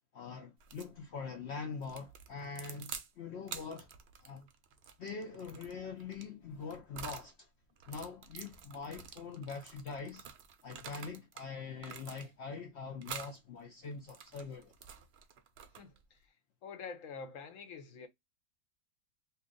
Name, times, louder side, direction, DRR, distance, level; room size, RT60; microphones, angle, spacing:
voice 1, 0.1-3.9 4.2-4.5 5.0-7.5 7.9-10.2 10.6-14.7, left 5 dB, 85° left, 0.6 m, -43 dB
sound 1, 0.6-0.9 1.8-3.1 3.4-7.3 7.8-11.5 11.8-12.5 13.0-13.4 13.9-16.0, right 7 dB, 70° right, 0.6 m, -48 dB
voice 2, 16.6-18.1, left 5 dB, 65° left, 0.9 m, -46 dB
2.8 x 2.4 x 3.6 m
omnidirectional pair, 1.7 m